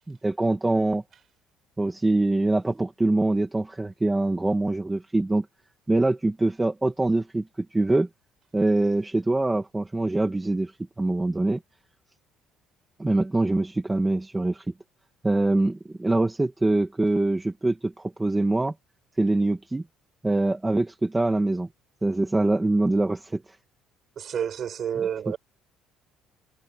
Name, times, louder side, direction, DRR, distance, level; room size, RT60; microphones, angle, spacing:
voice 1, 0.1-1.0 1.8-5.4 5.9-8.1 8.5-10.7 11.0-11.6 13.0-14.6 15.2-18.7 19.2-19.8 20.2-21.7 22.0-23.4, right 2 dB, 10° right, 1.7 m, -24 dB
voice 2, 24.2-25.4, right 8 dB, 35° right, 6.3 m, -29 dB
cardioid pair, 175°, 0 cm